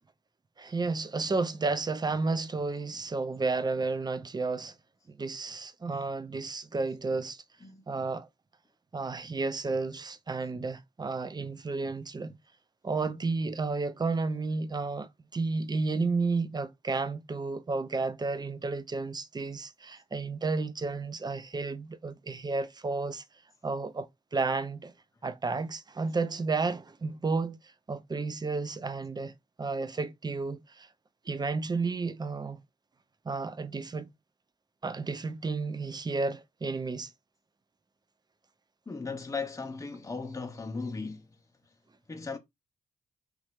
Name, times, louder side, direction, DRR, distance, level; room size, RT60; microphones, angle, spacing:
voice 1, 0.6-4.7 5.1-7.4 7.9-8.3 8.9-12.3 12.8-23.2 23.6-24.9 25.2-27.6 27.9-29.3 29.6-30.9 31.3-32.6 33.3-34.1 34.8-37.1, right 3 dB, 25° right, 0.5 m, -32 dB
voice 2, 38.9-41.3 42.1-42.4, left 4 dB, 20° left, 0.6 m, -37 dB
3.1 x 2.4 x 3.0 m
supercardioid pair, 45°, 17 cm